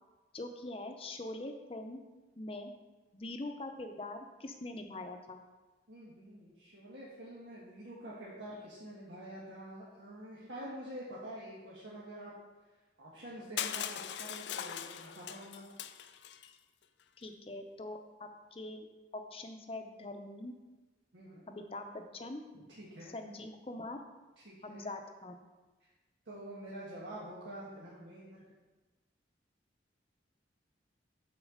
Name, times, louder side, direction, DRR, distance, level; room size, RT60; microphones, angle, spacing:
voice 1, 0.3-2.0 2.4-2.7 3.1-5.4 17.2-18.9 19.1-20.5 21.5-22.4 23.0-24.0 24.6-25.4, left 2 dB, 30° left, 6 dB, 0.6 m, -43 dB
voice 2, 5.9-12.3 13.0-15.6 21.1-21.4 22.5-23.1 24.4-24.9 26.2-28.4, right 1 dB, 90° right, -7 dB, 1.5 m, -47 dB
Crushing, 13.6-16.5, left 10 dB, 70° left, 0.4 m, -40 dB
6.3 x 4.5 x 6.5 m, 1.2 s
head